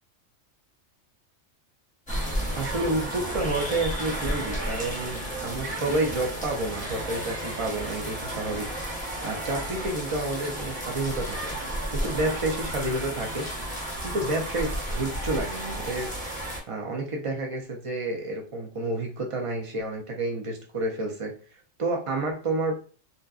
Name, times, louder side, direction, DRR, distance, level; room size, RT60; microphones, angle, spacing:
sound 1, 2.1-16.6, right 1 dB, 10° left, 0.5 m, -32 dB
voice 1, 2.6-8.7 9.2-11.6 11.9-13.5 14.0-16.1 16.7-21.3 21.8-22.8, right 2 dB, 60° right, 1 dB, 0.3 m, -29 dB
2.8 x 2.2 x 2.3 m, 0.39 s
omnidirectional pair, 1.3 m